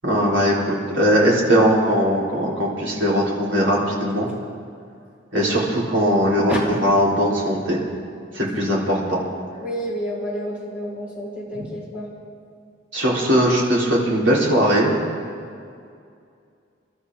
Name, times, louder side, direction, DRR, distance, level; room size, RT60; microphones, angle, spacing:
voice 1, 0.0-4.3 5.3-6.5 6.8-7.8 8.3-9.2 11.5-11.7 12.9-14.9, equal, 75° right, -4 dB, 3.7 m, -19 dB
voice 2, 4.1-4.4 6.5-6.6 9.6-12.1, equal, 10° right, -6 dB, 4.4 m, -30 dB
29.5 x 12.5 x 3.7 m, 2.3 s
head